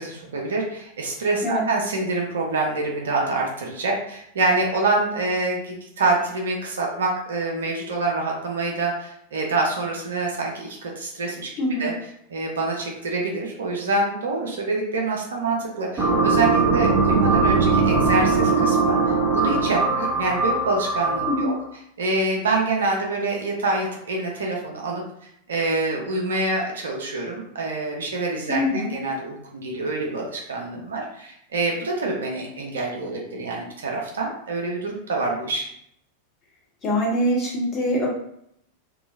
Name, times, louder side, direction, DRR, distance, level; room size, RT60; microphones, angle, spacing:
voice 1, 0.0-11.5 11.8-11.9 12.3-19.0 19.3-21.5 22.0-25.0 25.5-35.6, right 3 dB, 65° right, -1 dB, 0.6 m, -26 dB
voice 2, 11.6-11.9 21.3-21.5 28.5-28.9 36.8-38.1, equal, 30° left, -4 dB, 1.1 m, -23 dB
sound 1, 16.0-21.6, right 4 dB, 20° right, 1.0 m, -20 dB
2.8 x 2.3 x 2.5 m, 0.74 s
figure-of-eight pair, 90°, 0 cm